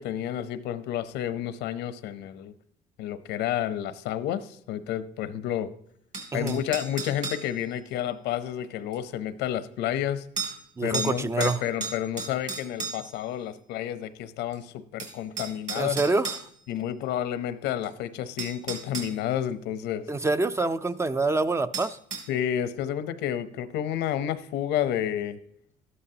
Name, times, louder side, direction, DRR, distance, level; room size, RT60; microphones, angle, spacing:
voice 1, 0.0-2.5 3.0-5.7 6.3-10.3 10.8-16.0 16.7-20.1 22.3-25.4, left 11 dB, 85° left, 0.8 m, -30 dB
sound 1, 6.1-7.5 8.9-9.0 10.4-10.6 10.9-11.1 11.4-13.2 14.5-14.6 15.0-16.4 17.8-17.9 18.4-19.1 21.7-22.3, right 4 dB, 45° right, 2.8 m, -33 dB
voice 2, 10.8-11.6 15.7-16.4 20.1-22.0, right 3 dB, 15° right, 0.4 m, -26 dB
13.0 x 11.0 x 2.8 m
cardioid pair, 110°, 17 cm